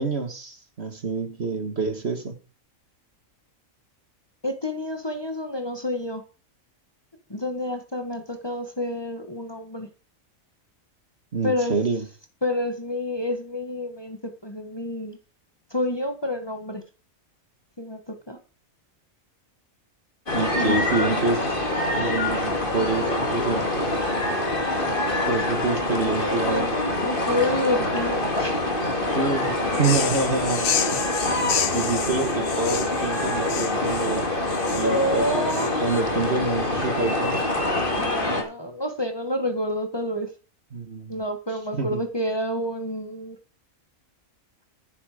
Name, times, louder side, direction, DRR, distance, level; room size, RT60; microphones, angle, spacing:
voice 1, 0.0-2.4 11.3-12.1 20.3-21.6 21.9-23.7 25.2-26.7 29.2-30.6 30.9-31.1 31.7-34.3 34.7-35.5 35.8-37.4 40.7-41.2 41.7-42.0, right 4 dB, 50° right, 1.9 m, -27 dB
voice 2, 4.4-6.2 7.3-9.9 11.4-11.8 12.4-15.2 15.7-16.8 17.8-18.4 20.6-20.8 26.1-28.7 34.7-35.8 38.0-40.3 41.1-43.4, left 1 dB, 20° left, 1.6 m, -28 dB
sound 1, 20.3-38.4, left 2 dB, 40° left, 2.9 m, -25 dB
sound 2, 29.7-36.0, left 8 dB, 55° left, 1.0 m, -30 dB
11.0 x 10.0 x 5.0 m
omnidirectional pair, 1.4 m